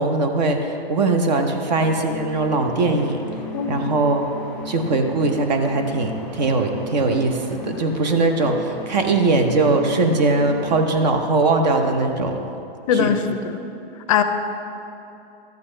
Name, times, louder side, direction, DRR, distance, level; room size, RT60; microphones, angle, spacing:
voice 1, 0.0-3.2 3.7-4.3 4.7-12.4 12.9-13.1, right 3 dB, 45° right, 5 dB, 0.8 m, -20 dB
sound 1, 1.6-10.9, left 2 dB, 5° left, 1.0 m, -37 dB
voice 2, 3.5-3.9 12.9-13.6 14.1-14.2, left 7 dB, 35° left, 7 dB, 0.5 m, -21 dB
13.0 x 8.1 x 3.3 m, 2.8 s
hypercardioid pair, 160°, 31 cm